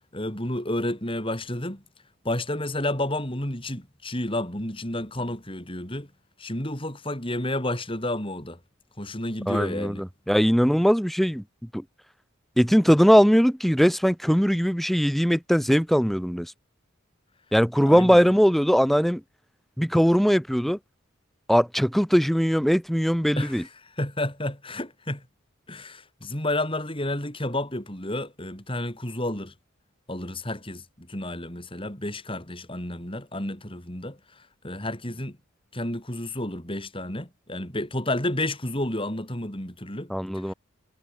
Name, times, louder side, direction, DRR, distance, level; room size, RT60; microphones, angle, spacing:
voice 1, 0.1-1.8 2.2-6.1 6.4-8.6 9.0-10.1 17.8-18.2 23.4-23.7 24.0-25.2 25.7-29.5 30.1-35.4 35.7-40.1 40.4-40.5, left 1 dB, 25° left, 5.6 m, -31 dB
voice 2, 9.5-11.4 11.7-11.8 12.6-16.5 17.5-19.2 19.8-20.8 21.5-23.6 40.1-40.5, equal, ahead, 5.0 m, -20 dB
head